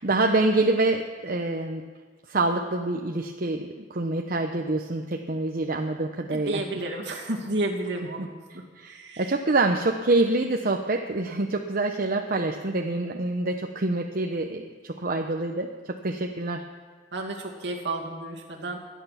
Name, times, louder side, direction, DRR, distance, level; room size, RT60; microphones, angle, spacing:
voice 1, 0.0-1.8 2.3-6.6 8.5-16.7, right 2 dB, 50° right, 3 dB, 0.8 m, -26 dB
voice 2, 6.3-8.3 8.9-9.2 17.1-18.8, right 2 dB, 70° right, 0 dB, 2.3 m, -31 dB
24.0 x 9.2 x 5.8 m, 1.5 s
head